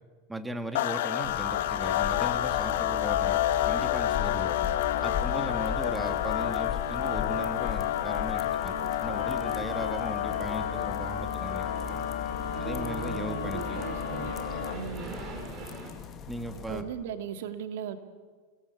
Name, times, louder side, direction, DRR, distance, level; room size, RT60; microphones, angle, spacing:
voice 1, 0.3-4.5 5.0-11.7 12.6-13.8 16.2-16.8, right 1 dB, 5° right, 7 dB, 1.7 m, -38 dB
sound 1, 0.7-14.9, left 12 dB, 75° left, 1.5 m, -30 dB
sound 2, 1.2-16.8, left 7 dB, 25° left, 2.1 m, -39 dB
sound 3, 4.3-15.9, right 3 dB, 30° right, 5.8 m, -45 dB
voice 2, 12.5-14.3 14.7-15.1 16.7-18.0, right 7 dB, 70° right, 8 dB, 2.4 m, -37 dB
28.0 x 19.5 x 8.3 m, 1.5 s
supercardioid pair, 150°, 0 cm